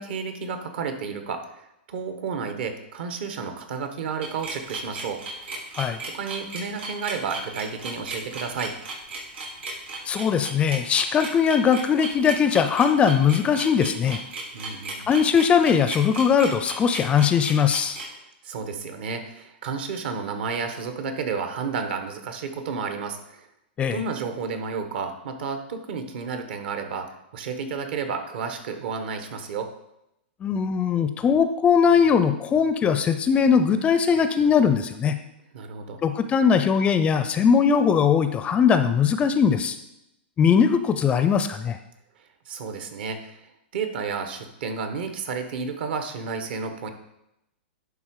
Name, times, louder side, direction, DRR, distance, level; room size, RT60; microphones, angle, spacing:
voice 1, 0.0-1.6 1.9-5.2 6.1-8.7 14.5-15.1 18.4-23.5 23.9-29.7 35.5-36.0 42.4-43.4 43.7-46.9, right 5 dB, 65° right, 7 dB, 1.3 m, -31 dB
sound 1, 4.2-18.0, right 3 dB, 80° right, 3.3 m, -35 dB
voice 2, 10.1-14.2 15.1-18.0 23.8-24.0 30.4-35.2 36.0-39.8 40.4-41.8, left 7 dB, 20° left, 10 dB, 0.5 m, -20 dB
11.0 x 3.6 x 4.8 m, 0.84 s
hypercardioid pair, 135°, 6 cm